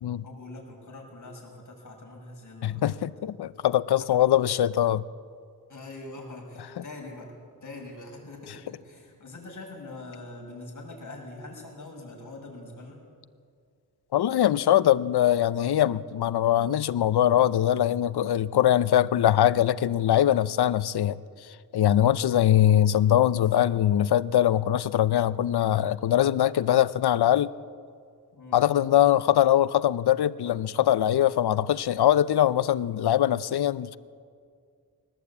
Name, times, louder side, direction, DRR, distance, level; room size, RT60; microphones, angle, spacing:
voice 1, 0.2-3.1 3.9-4.4 5.7-13.0 28.3-28.8, left 2 dB, 50° left, 0 dB, 6.8 m, -43 dB
voice 2, 2.6-5.0 14.1-21.2 21.7-27.5 28.5-34.0, left 11 dB, 80° left, 16 dB, 0.7 m, -22 dB
22.0 x 19.0 x 8.5 m, 2.2 s
wide cardioid pair, 100°, 38 cm